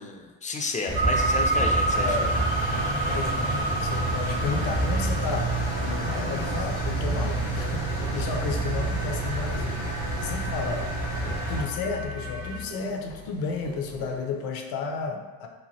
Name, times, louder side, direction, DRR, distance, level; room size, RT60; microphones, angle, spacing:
voice 1, 0.0-2.3, left 3 dB, 20° left, 3 dB, 0.4 m, -32 dB
Engine, 0.9-11.6, right 2 dB, 90° left, 1.3 m, -28 dB
sound 1, 0.9-14.2, right 3 dB, 30° right, 0.8 m, -32 dB
voice 2, 1.9-2.4 3.1-5.5 5.8-9.8 10.2-10.9 11.5-15.5, left 4 dB, 65° left, 3 dB, 0.6 m, -32 dB
sound 2, 3.9-12.6, left 3 dB, 60° right, 0.6 m, -37 dB
3.1 x 2.2 x 2.7 m, 1.3 s
hypercardioid pair, 65°, 40 cm